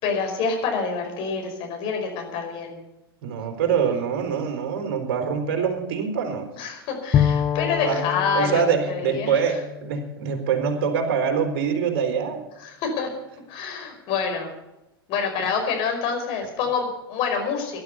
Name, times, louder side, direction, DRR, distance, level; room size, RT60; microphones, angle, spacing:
voice 1, 0.0-2.8 6.6-9.4 12.6-13.1 13.5-14.5 15.1-17.8, left 5 dB, 45° left, 3 dB, 5.1 m, -27 dB
voice 2, 3.2-6.5 7.8-8.1 8.3-12.4 15.4-15.5, right 7 dB, 55° right, 4 dB, 3.8 m, -24 dB
Bowed string instrument, 7.1-10.9, left 9 dB, 25° left, 0.7 m, -27 dB
19.0 x 11.5 x 5.6 m, 0.94 s
figure-of-eight pair, 90°, 13 cm